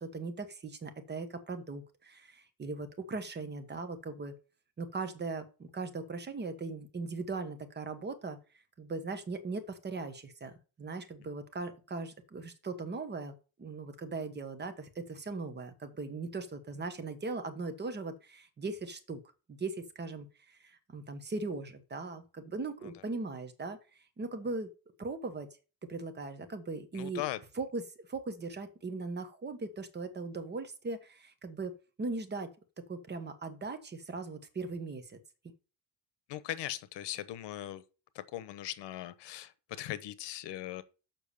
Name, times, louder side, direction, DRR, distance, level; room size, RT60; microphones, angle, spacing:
voice 1, 0.0-4.3 4.8-8.4 8.8-10.5 10.8-19.2 19.5-23.8 24.2-24.7 25.0-25.5 25.9-27.2 27.5-32.5 32.9-35.2, right 3 dB, 25° right, 1.2 m, -39 dB
voice 2, 26.9-27.4 36.3-37.8 38.1-40.8, left 13 dB, 80° left, 1.0 m, -39 dB
7.3 x 5.9 x 6.8 m
cardioid pair, 160°, 41 cm